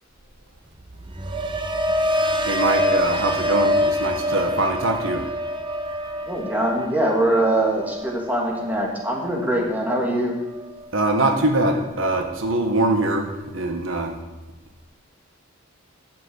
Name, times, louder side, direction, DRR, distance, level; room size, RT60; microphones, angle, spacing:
sound 1, 0.8-10.9 11.2-11.7, equal, 25° right, 0.8 m, -26 dB
voice 1, 2.5-5.2 10.9-14.2, right 2 dB, 75° right, 3 dB, 1.5 m, -23 dB
voice 2, 6.2-10.3, right 1 dB, 10° right, -2 dB, 2.3 m, -23 dB
12.0 x 6.1 x 8.1 m, 1.1 s
head